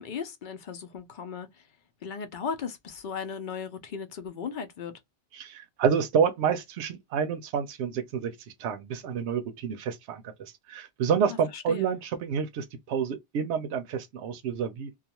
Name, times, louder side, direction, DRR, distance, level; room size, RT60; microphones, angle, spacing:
voice 1, 0.0-1.6 2.0-5.0 11.3-12.0, left 6 dB, 55° left, 0.6 m, -37 dB
voice 2, 5.3-8.3 8.6-14.9, right 7 dB, 85° right, 0.9 m, -29 dB
2.3 x 2.3 x 2.8 m
omnidirectional pair, 1.1 m